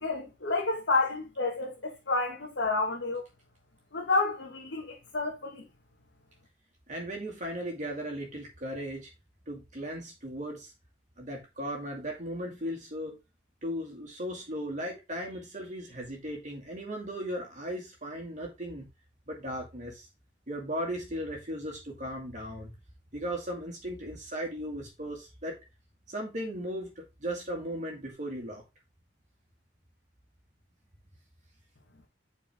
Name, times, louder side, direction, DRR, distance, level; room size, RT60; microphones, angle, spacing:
voice 1, 0.0-3.2 3.9-5.6, left 3 dB, 80° left, 1.4 m, -30 dB
voice 2, 6.9-9.1 9.5-10.7 11.2-13.2 13.6-18.9 19.3-20.0 20.5-22.7 23.1-25.6 26.1-28.6, equal, 45° right, 2.0 m, -37 dB
8.4 x 4.6 x 3.4 m
head